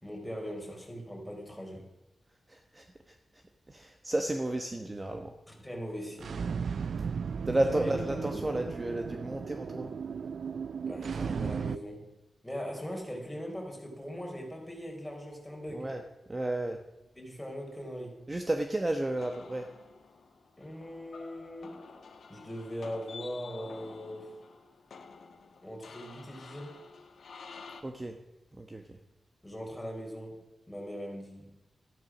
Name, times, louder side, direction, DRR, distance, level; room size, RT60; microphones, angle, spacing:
voice 1, 0.0-1.9 5.5-6.4 7.7-8.6 10.9-12.1 12.4-15.9 17.2-18.2 20.6-21.8 22.3-24.3 25.6-26.8 29.4-30.4 30.7-31.5, equal, 5° left, 0 dB, 4.2 m, -40 dB
voice 2, 2.5-3.1 3.7-5.3 7.4-9.9 15.7-16.0 16.3-16.8 18.3-19.7 27.8-28.2 28.6-28.8, right 1 dB, 25° right, 4 dB, 1.1 m, -32 dB
sound 1, 6.1-11.8, right 6 dB, 70° right, 0.4 m, -35 dB
sound 2, 19.2-27.8, left 5 dB, 70° left, 1.5 m, -50 dB
13.5 x 10.5 x 6.1 m, 0.95 s
cardioid pair, 90°, 0 cm